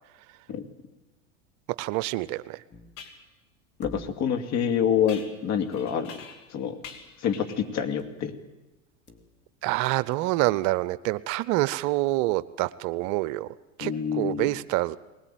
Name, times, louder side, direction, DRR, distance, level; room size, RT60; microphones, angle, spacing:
voice 1, 1.8-2.6 9.6-13.5 13.8-15.0, right 18 dB, 50° right, 18 dB, 0.7 m, -27 dB
sound 1, 2.0-2.1 3.0-3.2 5.1-6.5 6.8-7.7, left 7 dB, 70° left, 3.2 m, -45 dB
sound 2, 2.7-3.2 3.8-4.5 6.9-7.1 7.4-7.5 8.0-8.3 8.8-9.7 10.1-10.2, left 3 dB, 25° left, 3.0 m, -45 dB
voice 2, 3.8-6.1 6.5-6.8 7.2-8.3 13.8-14.5, left 8 dB, 45° left, 7 dB, 2.6 m, -27 dB
20.5 x 20.0 x 9.2 m, 1.0 s
hypercardioid pair, 95°, 38 cm